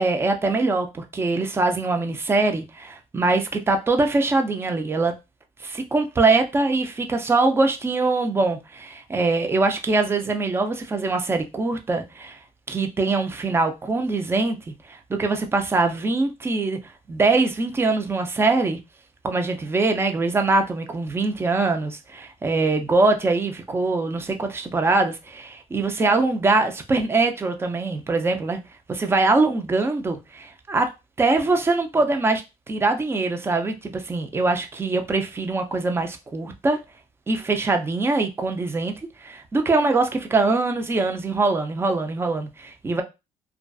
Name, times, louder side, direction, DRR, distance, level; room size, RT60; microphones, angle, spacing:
voice 1, 0.0-5.1 5.6-12.4 12.7-16.8 17.1-18.8 19.2-28.6 28.9-30.9 31.2-36.8 37.3-38.9 39.2-43.0, right 3 dB, 15° right, 0.3 m, -23 dB
2.4 x 2.3 x 2.2 m
cardioid pair, 125°, 14 cm